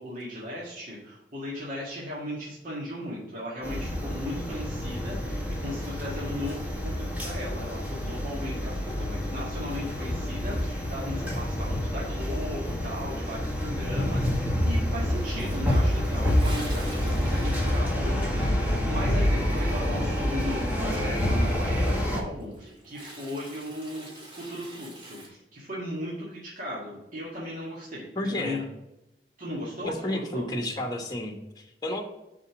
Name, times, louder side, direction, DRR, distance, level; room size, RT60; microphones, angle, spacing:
voice 1, 0.0-28.6 29.4-30.4, left 1 dB, 50° right, -7 dB, 1.9 m, -37 dB
sound 1, 3.6-22.2, equal, 10° right, 1.6 m, -28 dB
Toilet flush, 15.3-18.7 19.0-20.2 22.2-25.3, right 1 dB, 30° right, 1.9 m, -45 dB
voice 2, 28.1-28.6 29.8-32.0, left 1 dB, 25° left, 3 dB, 1.2 m, -31 dB
5.4 x 5.0 x 6.0 m, 0.95 s
head